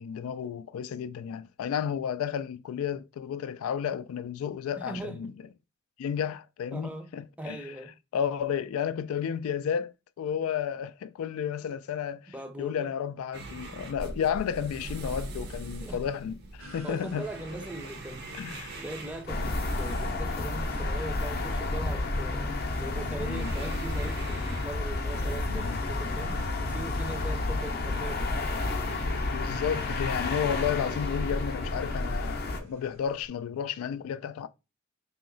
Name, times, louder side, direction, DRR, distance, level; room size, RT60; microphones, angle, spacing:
voice 1, 0.0-5.3 6.0-7.6 8.1-17.3 18.3-18.8 23.2-23.5 25.5-25.8 29.3-34.5, left 8 dB, 85° left, 0.3 m, -32 dB
voice 2, 4.8-5.2 6.7-7.1 7.4-7.9 11.7-11.8 12.3-12.9 15.8-16.0 16.8-18.4 18.7-28.7, right 1 dB, 5° right, 0.5 m, -40 dB
sound 1, 13.3-29.2, right 1 dB, 50° right, 0.6 m, -42 dB
sound 2, 16.6-33.3, right 1 dB, 80° right, 1.4 m, -49 dB
sound 3, 19.3-32.6, left 2 dB, 45° left, 0.6 m, -31 dB
3.0 x 2.8 x 3.8 m
head